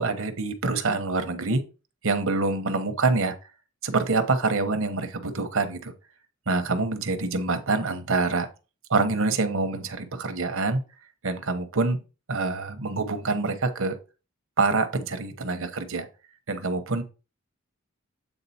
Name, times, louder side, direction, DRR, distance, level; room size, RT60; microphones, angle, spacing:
voice 1, 0.0-1.6 2.0-3.3 3.8-5.9 6.5-8.5 8.9-10.8 11.2-12.0 12.3-13.9 14.6-16.1 16.5-17.0, right 3 dB, 65° right, 8 dB, 1.0 m, -26 dB
8.2 x 3.8 x 4.3 m, 0.32 s
head